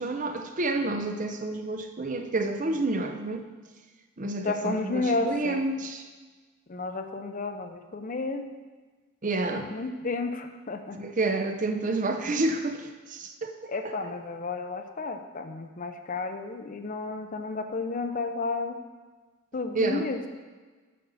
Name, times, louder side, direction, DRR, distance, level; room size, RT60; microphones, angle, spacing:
voice 1, 0.0-3.5 4.2-6.1 9.2-9.7 10.9-13.9 19.7-20.1, right 2 dB, 35° right, 6 dB, 0.6 m, -29 dB
voice 2, 4.4-5.6 6.7-8.4 9.5-11.0 13.7-18.8 19.5-20.2, left 3 dB, 35° left, 6 dB, 0.6 m, -32 dB
8.5 x 5.4 x 6.9 m, 1.4 s
head